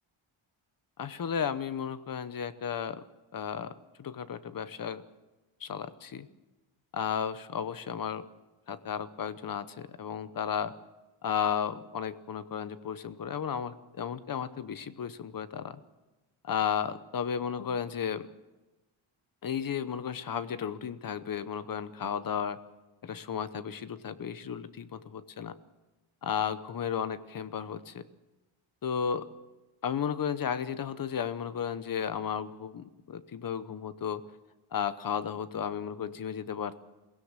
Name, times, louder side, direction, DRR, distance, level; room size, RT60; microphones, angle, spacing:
voice 1, 1.0-3.0 3.3-3.7 4.0-5.0 5.6-6.3 6.9-8.3 8.7-10.7 11.2-15.8 16.4-18.3 19.4-22.6 23.0-25.6 26.2-28.0 28.8-29.3 29.8-34.2 34.7-36.8, left 7 dB, 45° left, 14 dB, 0.9 m, -34 dB
22.5 x 16.5 x 7.4 m, 1.1 s
wide cardioid pair, 180°, 50 cm